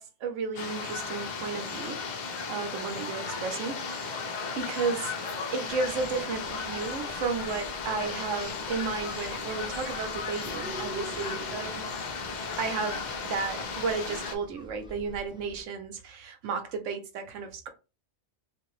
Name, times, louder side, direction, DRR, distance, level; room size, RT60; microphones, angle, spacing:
voice 1, 0.0-2.0 2.5-5.1 5.5-11.8 12.6-17.7, right 5 dB, 80° right, 1.1 m, -33 dB
sound 1, 0.6-14.4, left 5 dB, 60° left, 0.5 m, -35 dB
sound 2, 5.7-15.6, equal, 5° right, 0.5 m, -46 dB
2.8 x 2.5 x 3.0 m
omnidirectional pair, 1.3 m